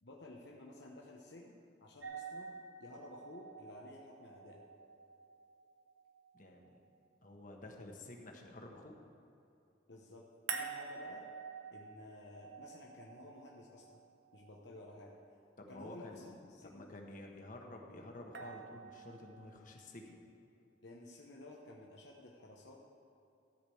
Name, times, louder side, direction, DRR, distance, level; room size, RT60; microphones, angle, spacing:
voice 1, 0.0-4.6 9.9-10.3 10.5-11.3 11.7-14.0 14.3-15.2 15.7-17.0 20.8-22.8, left 2 dB, 65° left, -2 dB, 1.0 m, -53 dB
wine glass, 2.0-7.0 10.5-14.6 18.3-19.5, right 5 dB, 65° right, 1.1 m, -48 dB
voice 2, 6.3-6.8 7.2-8.9 15.6-16.3 16.6-20.2, left 1 dB, 45° left, 1 dB, 1.3 m, -51 dB
13.5 x 5.2 x 7.8 m, 2.7 s
head